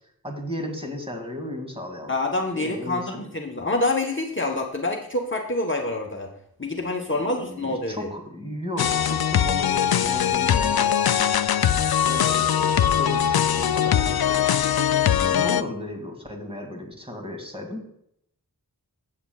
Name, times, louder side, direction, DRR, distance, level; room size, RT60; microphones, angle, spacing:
voice 1, 0.2-2.1 2.5-3.2 7.3-11.2 12.0-14.6 15.2-17.8, left 1 dB, 15° right, 1 dB, 2.2 m, -35 dB
voice 2, 2.1-6.3 6.6-8.1, left 2 dB, 30° left, 1 dB, 1.1 m, -26 dB
sound 1, 8.8-15.6, left 9 dB, 75° left, 0.5 m, -21 dB
15.5 x 7.6 x 2.3 m, 0.74 s
wide cardioid pair, 40°, 37 cm